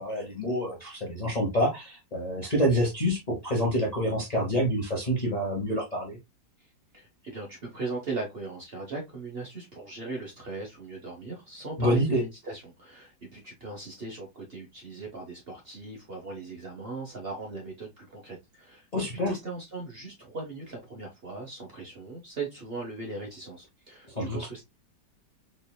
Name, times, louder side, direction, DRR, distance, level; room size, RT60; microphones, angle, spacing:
voice 1, 0.0-6.2 11.8-12.2 18.9-19.3 24.1-24.4, equal, 35° left, 0.7 m, -27 dB
voice 2, 6.9-18.8 19.3-24.6, right 3 dB, 45° right, 0.8 m, -38 dB
4.2 x 3.2 x 2.2 m
omnidirectional pair, 1.9 m